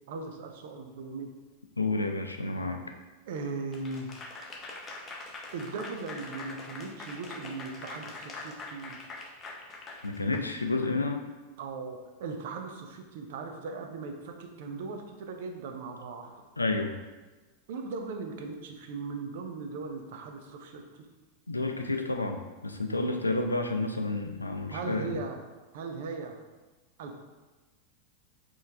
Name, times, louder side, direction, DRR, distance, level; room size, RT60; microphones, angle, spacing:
voice 1, 0.1-1.3 3.3-4.1 5.5-9.0 11.6-16.4 17.7-20.8 24.7-25.4 25.7-26.4 27.0-27.2, right 4 dB, 55° right, 4 dB, 0.5 m, -38 dB
voice 2, 1.8-2.8 10.0-11.2 16.6-16.9 21.5-25.2, left 2 dB, 80° left, 5 dB, 0.4 m, -30 dB
Applause / Crowd, 3.7-10.9, left 3 dB, 25° left, 0.6 m, -43 dB
4.3 x 3.1 x 3.4 m, 1.2 s
figure-of-eight pair, 90°, 0 cm